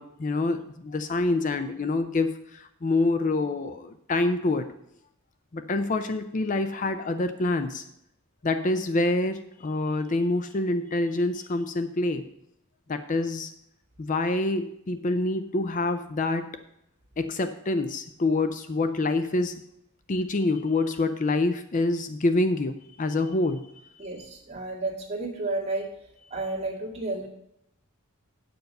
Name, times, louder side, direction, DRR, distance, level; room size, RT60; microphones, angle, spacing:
voice 1, 0.0-4.7 5.5-7.8 8.4-12.3 12.9-13.5 14.0-16.5 17.2-19.6 20.1-23.9, left 2 dB, 35° left, 9 dB, 0.5 m, -26 dB
voice 2, 24.0-25.9 26.3-27.3, right 2 dB, 30° right, -2 dB, 2.1 m, -31 dB
9.2 x 7.0 x 5.4 m, 0.77 s
head